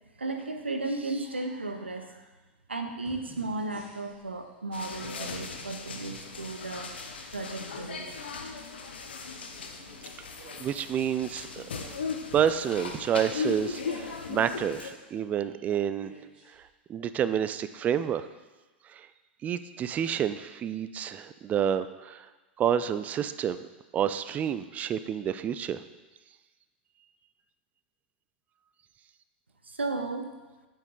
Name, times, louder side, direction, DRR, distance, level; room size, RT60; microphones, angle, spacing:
voice 1, 0.2-2.2 2.7-6.9 7.3-8.1 29.6-30.3, right 2 dB, 80° right, 5 dB, 0.8 m, -34 dB
sound 1, 3.0-4.3 6.1-6.2 9.1-10.8 11.6-12.6 13.4-14.3 15.8-16.6 17.2-17.3, right 3 dB, 60° right, 2.5 m, -51 dB
sound 2, 4.7-14.9, left 5 dB, 70° left, 0.8 m, -38 dB
voice 2, 10.6-11.6 12.3-16.1 16.9-18.2 19.4-22.2 22.6-23.6 23.9-25.8, right 9 dB, 25° right, 12 dB, 0.4 m, -29 dB
8.5 x 5.1 x 3.8 m, 1.2 s
figure-of-eight pair, 90°, 6 cm